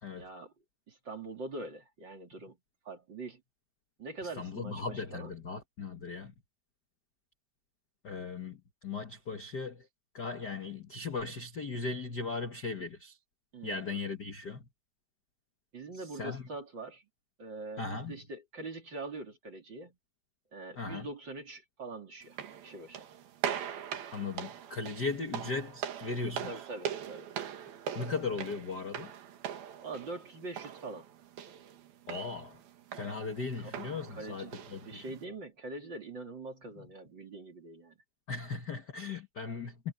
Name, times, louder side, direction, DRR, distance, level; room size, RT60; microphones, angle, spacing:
voice 1, 0.1-0.5 0.9-2.6 2.8-3.4 4.0-5.3 13.5-14.0 15.7-17.0 17.4-20.0 20.5-23.1 26.5-27.3 29.8-31.1 33.6-33.7 34.1-34.5 34.9-38.0, right 3 dB, 30° right, 3.3 m, -43 dB
voice 2, 4.3-6.3 8.0-9.9 10.1-13.2 13.6-14.7 15.9-16.5 17.8-18.2 20.7-21.1 24.1-26.7 27.9-29.1 32.1-32.6 32.9-35.2 36.8-36.9 38.3-39.9, left 4 dB, 45° left, 1.4 m, -38 dB
sound 1, 22.2-35.2, right 9 dB, 80° right, 3.7 m, -41 dB
omnidirectional pair, 4.2 m